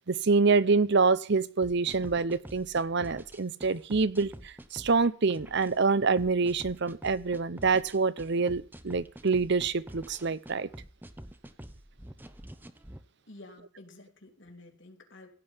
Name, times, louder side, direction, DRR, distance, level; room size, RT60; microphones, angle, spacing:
voice 1, 0.1-10.7, right 4 dB, 55° right, 0.7 m, -26 dB
sound 1, 1.6-13.0, right 1 dB, 10° right, 0.9 m, -47 dB
voice 2, 13.3-15.3, left 2 dB, 60° left, 3.0 m, -51 dB
16.5 x 5.5 x 9.7 m
head